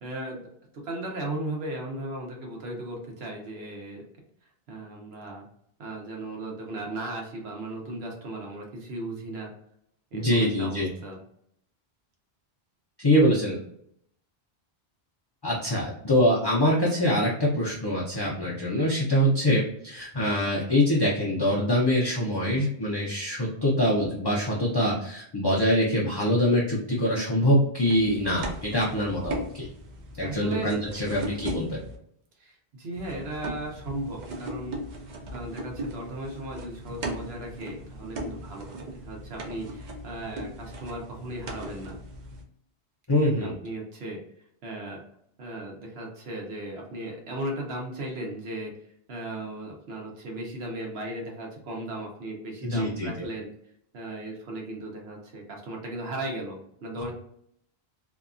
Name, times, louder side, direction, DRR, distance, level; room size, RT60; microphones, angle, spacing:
voice 1, 0.0-0.5 0.8-4.0 4.7-5.5 5.8-9.5 10.1-11.2 30.2-30.7 31.1-31.4 32.4-42.0 43.4-44.2 44.6-45.0 45.4-48.7 49.1-53.5 53.9-57.1, right 1 dB, 75° right, 0 dB, 1.0 m, -36 dB
voice 2, 10.1-10.9 13.0-13.6 15.4-29.7 30.2-31.8 43.1-43.5 52.6-53.3, equal, 35° left, -5 dB, 0.4 m, -24 dB
sound 1, 27.8-32.0 32.9-42.4, right 1 dB, 55° right, 0.6 m, -38 dB
2.7 x 2.3 x 2.4 m, 0.70 s
omnidirectional pair, 1.1 m